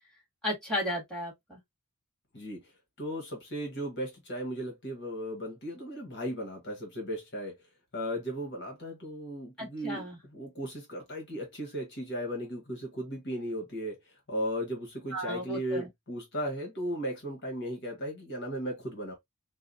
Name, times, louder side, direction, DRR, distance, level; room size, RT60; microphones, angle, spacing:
voice 1, 0.4-1.6 9.6-10.2 15.1-15.9, equal, 5° left, 2.0 m, -34 dB
voice 2, 2.3-2.7 3.0-7.6 7.9-19.1, equal, 50° left, 1.3 m, -36 dB
4.7 x 2.2 x 2.6 m
head